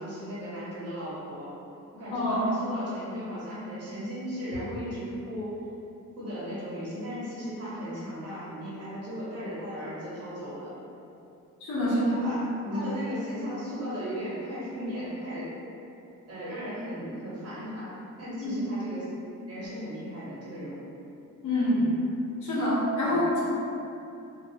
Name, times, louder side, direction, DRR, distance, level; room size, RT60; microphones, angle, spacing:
voice 1, 0.0-1.5 1.9-5.5 6.2-10.7 11.8-15.5 16.3-19.1 19.5-20.9 23.0-23.2, equal, 50° right, -9 dB, 1.1 m, -36 dB
voice 2, 2.1-2.5 11.6-12.3 12.7-12.9 18.4-18.6 21.4-21.9 22.4-23.4, left 1 dB, 70° left, -8 dB, 0.8 m, -26 dB
2.5 x 2.1 x 2.7 m, 2.7 s
cardioid pair, 115°, 32 cm